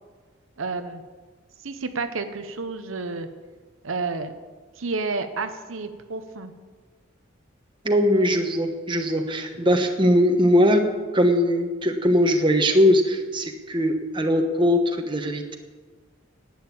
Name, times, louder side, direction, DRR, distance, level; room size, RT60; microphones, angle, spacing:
voice 1, 0.6-1.0 1.6-3.3 3.8-4.3 4.8-6.5, right 3 dB, 75° right, 8 dB, 0.9 m, -30 dB
voice 2, 7.8-10.8 11.1-15.6, equal, 25° right, 4 dB, 1.2 m, -20 dB
11.5 x 9.1 x 8.5 m, 1.4 s
head